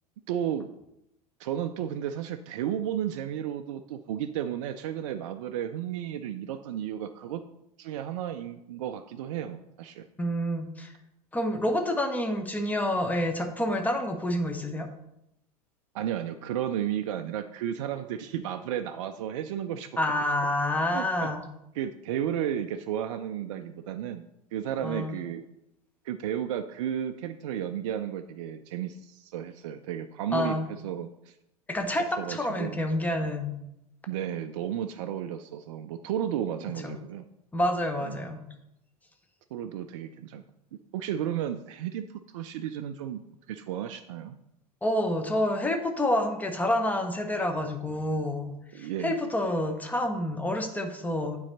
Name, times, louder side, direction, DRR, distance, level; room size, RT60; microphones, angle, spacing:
voice 1, 0.3-0.7 1.4-7.4 7.8-10.0 15.9-19.9 20.9-21.3 21.7-24.2 24.5-25.4 26.0-31.4 32.2-32.8 34.1-37.2 38.0-38.2 39.5-40.4 40.9-43.2 43.5-44.4 48.7-49.2, right 10 dB, 55° right, 8 dB, 0.4 m, -33 dB
voice 2, 10.2-10.9 11.3-14.9 20.0-21.4 24.8-25.2 30.3-30.7 31.7-33.5 36.8-37.0 37.5-38.4 44.8-51.4, left 1 dB, 10° left, 4 dB, 0.9 m, -28 dB
8.9 x 4.0 x 4.1 m, 0.84 s
figure-of-eight pair, 80°, 20 cm